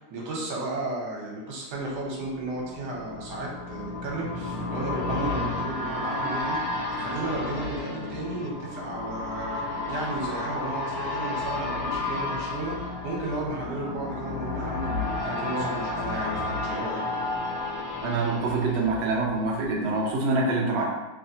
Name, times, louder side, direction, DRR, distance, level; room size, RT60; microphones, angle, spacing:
voice 1, 0.0-6.6 6.9-17.0, right 2 dB, 85° right, -3 dB, 1.4 m, -34 dB
sound 1, 2.0-19.7 20.0-20.1, left 2 dB, 90° left, 1.3 m, -32 dB
voice 2, 18.0-20.9, right 3 dB, 60° right, -2 dB, 0.7 m, -25 dB
3.2 x 2.8 x 2.7 m, 1.1 s
omnidirectional pair, 1.8 m